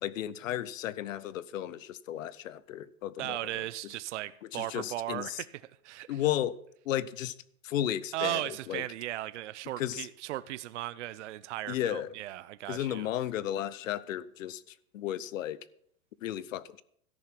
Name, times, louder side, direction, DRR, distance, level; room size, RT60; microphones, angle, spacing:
voice 1, 0.0-3.4 4.5-5.4 6.1-6.6 6.8-7.3 7.6-8.8 9.8-10.1 11.7-12.1 12.7-15.6 16.2-16.8, left 12 dB, 65° left, 0.9 m, -34 dB
voice 2, 3.2-5.5 5.8-6.2 8.1-13.1, right 15 dB, 55° right, 0.6 m, -36 dB
13.5 x 10.5 x 6.0 m
supercardioid pair, 170°, 42 cm